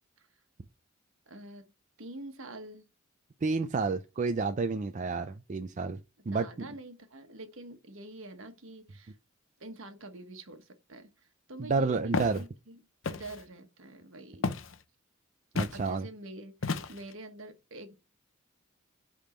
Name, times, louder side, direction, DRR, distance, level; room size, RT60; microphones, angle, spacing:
voice 1, 1.3-1.7 2.0-2.9 6.3-9.2 9.6-14.5 15.7-18.0, right 1 dB, 70° right, 1.3 m, -46 dB
voice 2, 3.4-6.0 6.3-6.7 11.7-12.4 15.5-16.1, right 4 dB, 35° right, 0.4 m, -30 dB
Walk footsteps, 12.1-12.4 13.0-13.4 14.4-14.8 15.6-15.8 16.6-17.1, left 3 dB, 65° left, 0.7 m, -32 dB
8.7 x 3.6 x 4.3 m
head